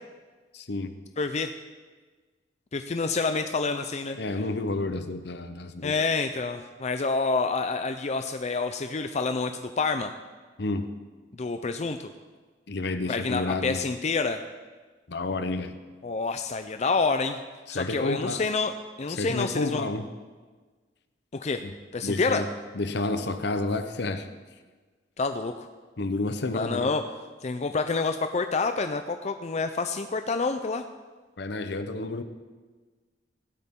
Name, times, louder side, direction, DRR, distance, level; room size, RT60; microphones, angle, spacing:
voice 1, 0.5-0.9 4.2-5.9 10.6-10.9 12.7-13.8 15.1-15.7 17.7-18.4 19.1-20.1 21.6-21.7 22.0-22.5 22.7-24.3 26.0-26.9 31.4-32.2, left 2 dB, 65° left, 10 dB, 0.8 m, -30 dB
voice 2, 1.2-1.5 2.7-4.2 5.8-10.1 11.4-12.1 13.1-14.4 16.0-17.4 17.7-18.7 19.0-19.9 21.3-21.6 21.9-22.4 25.2-25.7 26.5-27.0 27.4-30.8, left 4 dB, 40° left, 8 dB, 0.5 m, -28 dB
16.0 x 12.5 x 3.7 m, 1.4 s
head